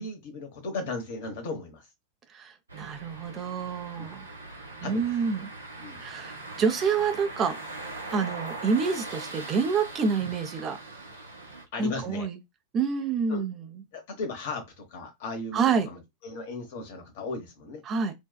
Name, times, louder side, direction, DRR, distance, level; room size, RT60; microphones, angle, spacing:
voice 1, 0.0-1.9 4.0-4.1 4.8-5.4 5.8-6.0 10.2-10.3 11.7-12.3 13.3-13.5 13.9-17.8, left 3 dB, 50° left, 0.9 m, -36 dB
voice 2, 2.3-4.3 4.8-5.5 6.0-7.6 8.1-10.8 11.8-12.4 12.7-13.6 15.5-15.9 17.9-18.1, right 5 dB, 30° right, 0.5 m, -27 dB
sound 1, 2.7-11.6, right 2 dB, 75° right, 0.6 m, -41 dB
2.6 x 2.3 x 2.2 m
figure-of-eight pair, 90°, 0 cm